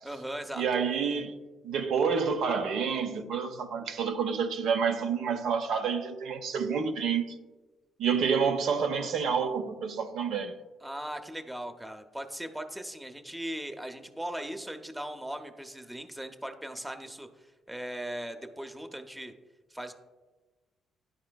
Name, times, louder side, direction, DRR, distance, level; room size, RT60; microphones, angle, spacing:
voice 1, 0.0-0.6 10.8-19.3 19.7-19.9, right 1 dB, 5° right, 0.6 m, -39 dB
voice 2, 0.6-7.3 8.0-10.6, right 6 dB, 80° right, 0.5 m, -29 dB
10.0 x 4.2 x 2.3 m
cardioid pair, 90°, 0 cm